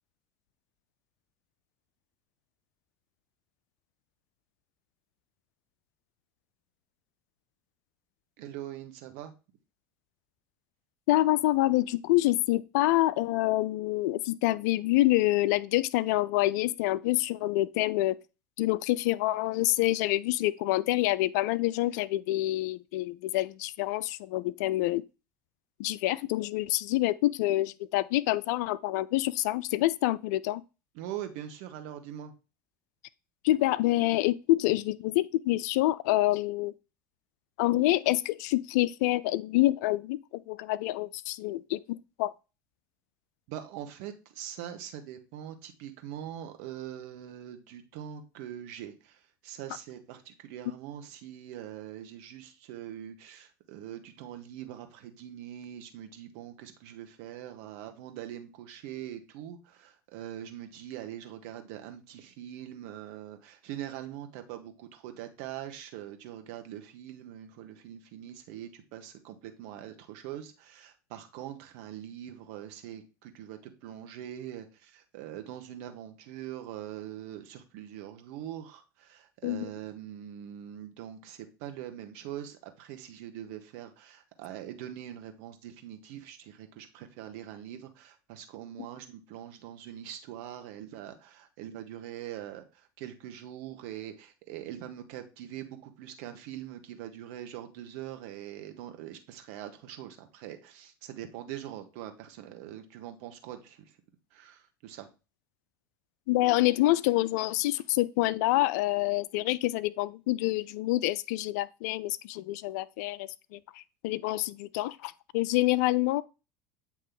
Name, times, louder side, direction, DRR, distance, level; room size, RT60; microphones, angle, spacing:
voice 1, 8.4-9.3 30.9-32.3 43.5-103.8 104.3-105.1, right 11 dB, 70° right, 1.1 m, -43 dB
voice 2, 11.1-18.2 18.6-25.0 25.8-30.6 33.4-36.7 37.6-42.3 79.4-79.7 106.3-113.6 114.0-116.2, left 17 dB, 70° left, 0.4 m, -27 dB
8.2 x 3.0 x 3.8 m
hypercardioid pair, 80°, 9 cm